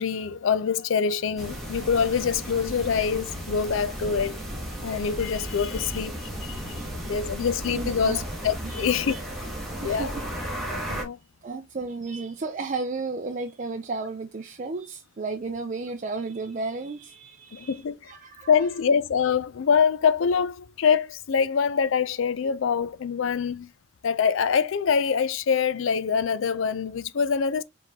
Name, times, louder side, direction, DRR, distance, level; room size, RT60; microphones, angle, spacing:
voice 1, 0.0-6.8 7.0-9.1 9.8-10.1 10.9-11.2 17.5-18.1 18.5-23.7 24.0-27.6, left 6 dB, 70° left, 0.4 m, -25 dB
sound 1, 1.4-11.0, right 1 dB, ahead, 1.2 m, -34 dB
voice 2, 6.7-7.1 7.7-8.2 8.6-9.2 9.8-10.2 11.4-18.7, right 3 dB, 40° right, 0.4 m, -34 dB
4.6 x 3.6 x 2.8 m
head